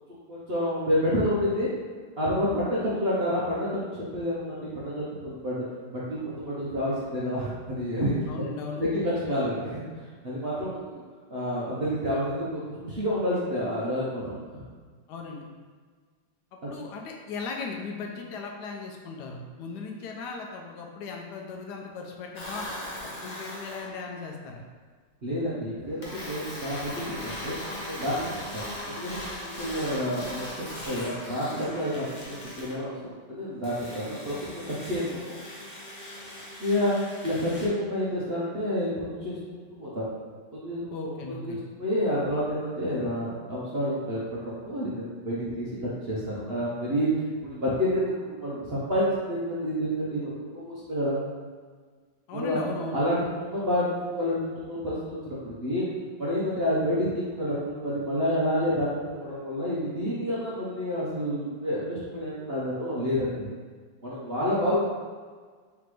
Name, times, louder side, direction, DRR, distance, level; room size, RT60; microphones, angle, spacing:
voice 1, 0.3-1.7 2.2-3.7 3.9-5.6 5.9-8.3 8.8-8.9 9.3-9.8 10.2-11.0 11.3-14.6 16.6-16.7 25.2-27.5 27.9-28.3 28.5-29.2 29.6-35.2 36.6-37.0 37.2-40.1 40.5-47.1 47.4-51.2 52.3-52.6 52.9-55.9 56.2-63.5 64.0-64.8, equal, 50° right, -9 dB, 0.7 m, -29 dB
voice 2, 8.3-8.8 15.1-15.4 16.7-22.7 23.2-24.6 40.9-41.6 52.3-53.0 64.4-64.7, left 4 dB, 75° left, 1 dB, 1.1 m, -37 dB
sound 1, 22.3-23.9 26.0-32.8 33.6-37.7, left 1 dB, 40° left, 0.7 m, -39 dB
4.0 x 3.4 x 3.2 m, 1.5 s
omnidirectional pair, 2.0 m